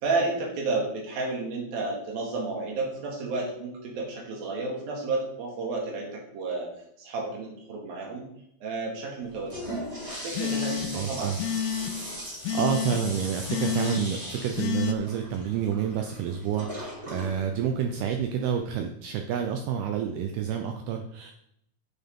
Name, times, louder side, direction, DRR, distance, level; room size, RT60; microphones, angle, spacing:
voice 1, 0.0-6.7 7.0-8.3 8.6-9.6 10.2-11.3, right 3 dB, 60° right, -2 dB, 3.5 m, -31 dB
Toilet flush, 9.2-18.6, equal, 30° right, 0.6 m, -39 dB
sound 1, 10.4-11.1 11.4-11.9 12.4-13.0 13.5-14.0 14.6-14.9, left 8 dB, 85° left, 2.5 m, -29 dB
voice 2, 10.9-11.4 12.2-21.3, right 8 dB, 80° right, 4 dB, 2.3 m, -29 dB
9.5 x 7.9 x 3.7 m, 0.75 s
omnidirectional pair, 5.2 m